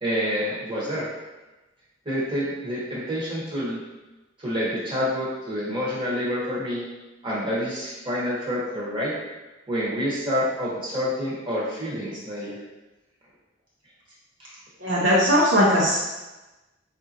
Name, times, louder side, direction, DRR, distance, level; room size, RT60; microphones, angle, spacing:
voice 1, 0.0-1.1 2.0-3.8 4.4-6.8 7.2-9.1 9.7-12.6 14.4-14.5, equal, 25° right, -7 dB, 1.2 m, -28 dB
voice 2, 14.8-16.0, equal, 65° right, -8 dB, 0.9 m, -19 dB
5.2 x 2.5 x 2.8 m, 1.1 s
head